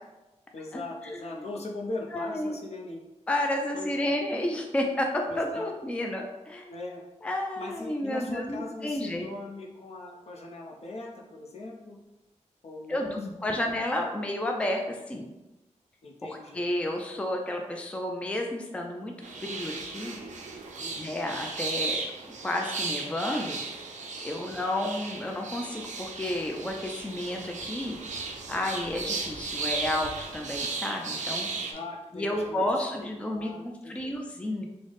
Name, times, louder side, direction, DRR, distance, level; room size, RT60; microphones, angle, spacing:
voice 1, 0.5-3.0 3.7-4.1 5.3-5.7 6.7-7.0 7.6-12.0 12.6-13.2 13.5-13.6 16.0-16.7 20.8-20.9 24.3-24.4 31.7-34.1, left 2 dB, 60° left, 0 dB, 0.6 m, -40 dB
voice 2, 1.1-1.5 2.1-2.6 3.3-6.7 7.2-9.3 12.9-15.3 16.3-20.2 21.0-22.0 22.4-23.6 24.2-28.0 28.5-31.5 32.1-34.7, left 1 dB, 10° left, 2 dB, 0.3 m, -31 dB
sound 1, 19.2-31.7, right 4 dB, 85° right, 0.4 m, -36 dB
3.9 x 2.0 x 3.3 m, 1.0 s
wide cardioid pair, 115°, 12 cm